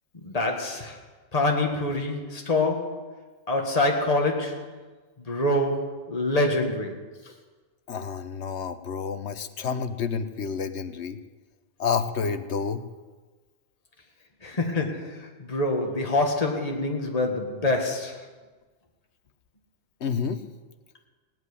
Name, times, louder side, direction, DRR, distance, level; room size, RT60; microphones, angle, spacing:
voice 1, 0.2-1.0 1.3-3.2 3.5-4.7 5.2-7.0 14.4-18.3, left 2 dB, 35° left, 1 dB, 1.9 m, -26 dB
voice 2, 7.9-11.2 11.8-12.8 20.0-20.4, left 6 dB, 70° left, 10 dB, 1.1 m, -29 dB
18.0 x 7.9 x 9.8 m, 1.3 s
omnidirectional pair, 1.2 m